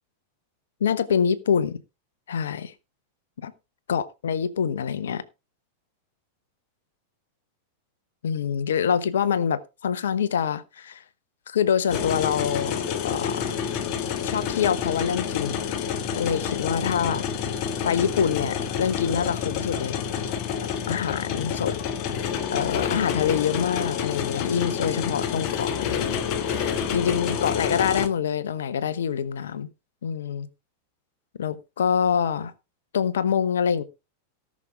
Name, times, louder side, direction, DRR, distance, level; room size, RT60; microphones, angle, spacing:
voice 1, 0.8-1.8 2.3-2.7 3.4-3.5 3.9-5.2 8.2-11.0 11.5-13.6 14.2-17.3 17.8-20.0 20.6-21.8 22.5-26.2 26.9-29.7 30.0-30.5 31.4-32.5 32.9-33.8, left 7 dB, 65° left, 1.0 m, -25 dB
sound 1, 11.9-28.1, left 7 dB, 40° left, 1.4 m, -28 dB
18.0 x 6.4 x 3.5 m
figure-of-eight pair, 90°, 0 cm